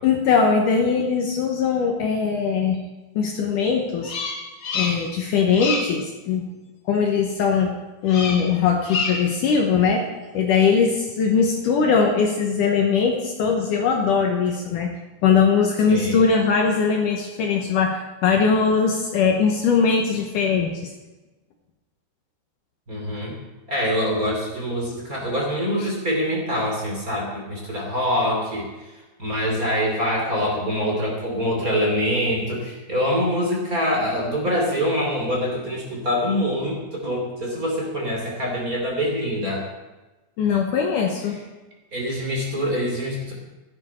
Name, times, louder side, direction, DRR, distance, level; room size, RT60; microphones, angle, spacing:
voice 1, 0.0-2.8 3.2-4.1 4.7-6.4 6.9-7.7 8.0-10.0 10.3-14.9 15.2-20.9 25.8-25.9 40.4-41.4, left 5 dB, 65° left, 1 dB, 2.3 m, -20 dB
Bird vocalization bird call bird song, 4.0-5.2 5.5-6.0 8.1-8.5 8.8-9.4, left 4 dB, 50° left, 1.4 m, -28 dB
voice 2, 15.9-16.2 22.9-23.3 23.7-28.7 28.9-39.7 41.9-43.3, equal, 25° right, -2 dB, 3.0 m, -25 dB
15.0 x 12.0 x 4.3 m, 1.1 s
omnidirectional pair, 4.4 m